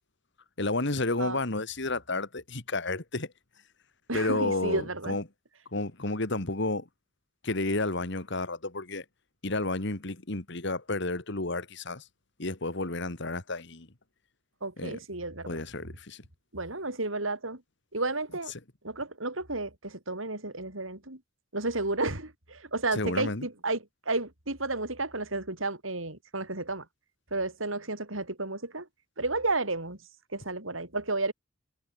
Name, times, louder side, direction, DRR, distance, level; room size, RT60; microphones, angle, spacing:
voice 1, 0.6-3.3 4.1-5.2 5.7-6.9 7.4-9.0 9.4-12.0 12.4-13.9 14.8-15.0 15.5-16.2 22.9-23.5, left 2 dB, 60° left, 2.3 m, -31 dB
voice 2, 4.1-5.2 14.6-15.6 16.5-17.6 17.9-18.5 18.8-21.2 21.5-26.8 27.3-28.9 29.2-30.0 30.3-31.3, right 2 dB, 85° right, 6.6 m, -32 dB
head